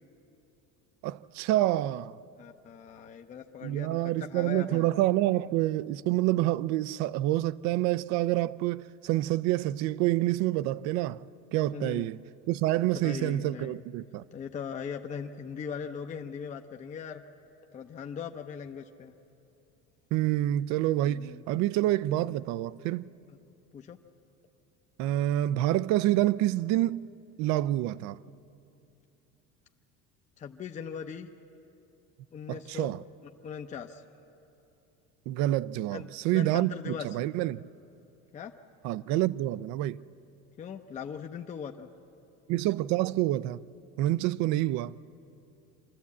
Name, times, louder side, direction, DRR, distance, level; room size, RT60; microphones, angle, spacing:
voice 1, 1.0-2.2 3.6-11.2 11.5-12.2 12.5-14.2 20.1-23.0 25.0-27.1 27.4-28.2 32.5-33.0 35.3-37.6 38.8-40.0 42.5-43.6 44.0-44.9, right 15 dB, 65° right, 0.5 m, -27 dB
voice 2, 2.4-4.9 11.7-12.1 12.9-13.8 14.3-17.2 17.7-19.1 21.0-21.4 23.7-24.0 30.4-31.3 32.3-32.9 33.4-34.0 35.9-37.1 38.3-38.5 40.6-41.9, left 7 dB, 25° left, 0.6 m, -39 dB
26.5 x 13.0 x 8.4 m
cardioid pair, 145°, 30 cm